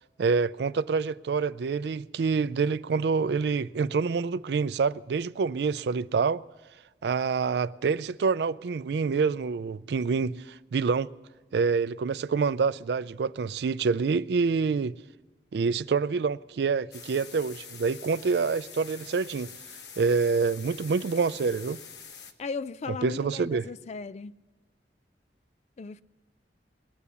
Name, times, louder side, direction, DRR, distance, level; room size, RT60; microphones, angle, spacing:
voice 1, 0.2-6.4 7.0-10.4 10.7-11.1 11.5-14.9 15.5-19.5 20.0-21.8 23.0-23.7, right 5 dB, 65° right, 0.4 m, -26 dB
sound 1, 16.9-22.3, left 6 dB, 70° left, 1.1 m, -45 dB
voice 2, 22.4-24.3 25.8-26.0, left 4 dB, 40° left, 0.4 m, -36 dB
20.5 x 8.5 x 7.0 m
head